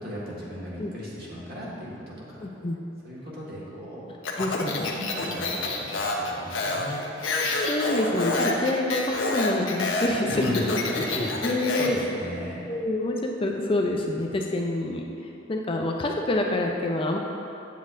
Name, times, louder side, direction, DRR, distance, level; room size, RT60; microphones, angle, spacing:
voice 1, 0.0-2.5 3.0-4.1 4.9-7.0 10.3-11.5 11.8-12.6, equal, 50° right, -6 dB, 1.5 m, -36 dB
voice 2, 2.4-2.8 4.4-4.9 7.4-10.7 11.1-12.2 12.7-17.2, left 2 dB, 25° left, 1 dB, 0.4 m, -27 dB
Speech, 4.2-12.0, left 2 dB, 90° left, 0.8 m, -28 dB
8.2 x 7.4 x 2.5 m, 2.8 s
head